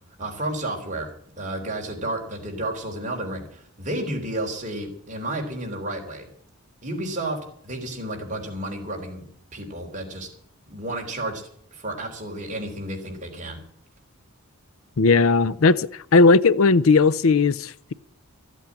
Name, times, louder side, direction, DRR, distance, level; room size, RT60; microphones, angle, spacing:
voice 1, 0.2-1.1 1.4-6.3 6.8-9.2 9.5-10.3 10.7-11.4 11.7-13.6, right 1 dB, 35° right, 3.7 m, -31 dB
voice 2, 15.0-17.9, left 4 dB, 65° left, 0.6 m, -17 dB
15.0 x 8.3 x 8.8 m
head